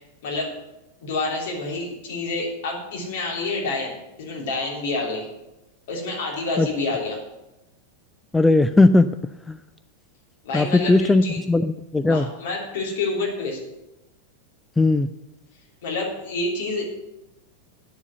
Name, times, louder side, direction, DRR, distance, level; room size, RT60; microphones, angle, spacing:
voice 1, 1.0-5.2 5.9-7.2 10.4-11.4 12.0-13.6 15.8-16.8, left 3 dB, 55° left, -2 dB, 3.3 m, -28 dB
voice 2, 8.3-9.1 9.5-9.6 10.5-12.2 14.8-15.1, left 2 dB, 10° left, 12 dB, 0.3 m, -18 dB
9.7 x 7.1 x 7.9 m, 0.95 s
figure-of-eight pair, 90°, 0 cm